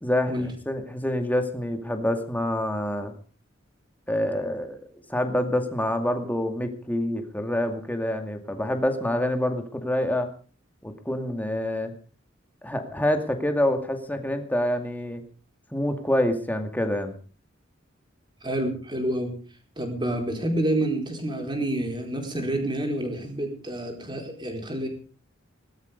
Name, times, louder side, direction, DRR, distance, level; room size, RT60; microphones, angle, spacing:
voice 1, 0.0-3.1 4.1-4.8 5.1-10.3 10.8-11.9 12.6-15.2 15.7-17.1, left 1 dB, 10° left, 6 dB, 2.3 m, -26 dB
voice 2, 18.4-19.3 19.8-24.9, right 1 dB, 25° right, 3 dB, 4.7 m, -28 dB
19.5 x 13.0 x 5.3 m, 0.40 s
head